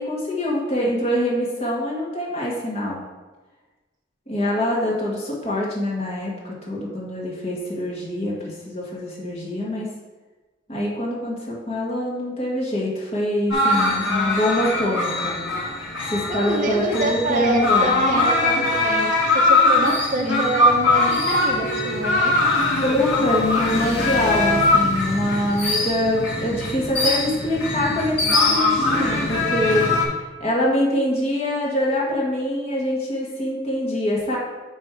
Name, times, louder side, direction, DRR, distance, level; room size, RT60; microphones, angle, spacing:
voice 1, 0.0-3.0 4.3-9.9 10.7-15.3 16.1-18.0 20.2-20.4 22.8-29.9 30.4-34.4, left 1 dB, 35° left, -4 dB, 1.7 m, -24 dB
sound 1, 13.5-30.0, left 2 dB, 85° left, 1.5 m, -21 dB
voice 2, 16.3-22.4, right 1 dB, 45° right, 0 dB, 0.9 m, -26 dB
9.4 x 3.4 x 4.6 m, 1.2 s
head